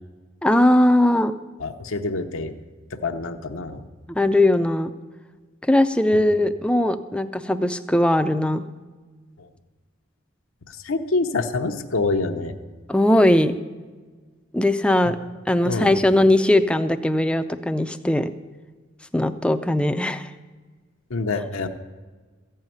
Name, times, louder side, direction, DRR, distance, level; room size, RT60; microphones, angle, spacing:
voice 1, 0.4-1.3 4.1-4.9 5.6-8.7 12.9-13.5 14.5-15.2 15.5-18.3 19.1-20.3, left 1 dB, 5° left, 9 dB, 0.4 m, -19 dB
voice 2, 1.6-2.5 3.0-3.8 10.7-12.5 15.0-15.1 15.7-15.9 21.1-21.7, left 3 dB, 80° left, 5 dB, 0.8 m, -26 dB
14.0 x 5.6 x 9.2 m, 1.4 s
head